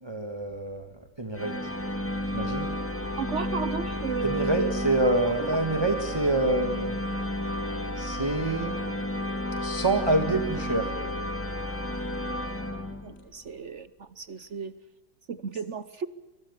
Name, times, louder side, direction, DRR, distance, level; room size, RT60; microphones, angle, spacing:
voice 1, 0.0-1.6 2.3-2.7 4.2-7.0 8.0-8.8 9.6-10.9, right 2 dB, 15° right, 6 dB, 1.6 m, -27 dB
sound 1, 1.4-13.3, left 1 dB, 5° left, 2.5 m, -32 dB
voice 2, 3.2-4.9 5.4-5.5 13.0-14.7 15.3-16.1, right 6 dB, 50° right, 15 dB, 0.9 m, -34 dB
24.5 x 21.5 x 7.3 m, 1.1 s
omnidirectional pair, 2.1 m